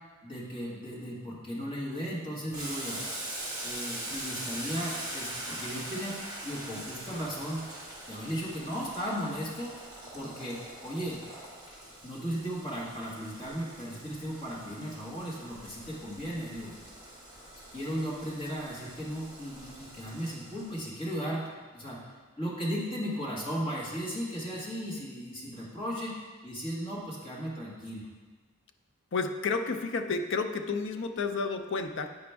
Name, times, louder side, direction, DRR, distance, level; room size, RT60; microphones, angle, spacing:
voice 1, 0.2-3.0 3.6-6.2 6.4-7.6 8.1-9.7 10.1-11.2 12.0-16.7 17.7-21.5 21.7-22.0 22.4-28.1, equal, 25° left, -6 dB, 1.6 m, -36 dB
Boiling, 2.5-20.9, right 1 dB, 15° right, 1.8 m, -42 dB
voice 2, 29.1-32.2, left 4 dB, 55° left, 6 dB, 0.5 m, -31 dB
8.8 x 5.1 x 3.4 m, 1.4 s
head